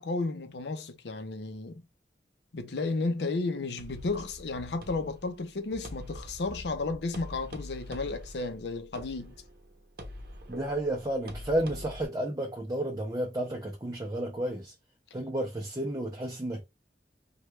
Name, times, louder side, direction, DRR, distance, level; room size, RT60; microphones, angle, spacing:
voice 1, 0.0-1.8 2.5-9.4, left 3 dB, 75° left, 0.6 m, -33 dB
sound 1, 3.8-12.0, equal, 55° right, 0.7 m, -45 dB
voice 2, 10.5-14.7 15.1-16.6, right 1 dB, 20° right, 0.5 m, -32 dB
3.1 x 2.2 x 3.1 m
head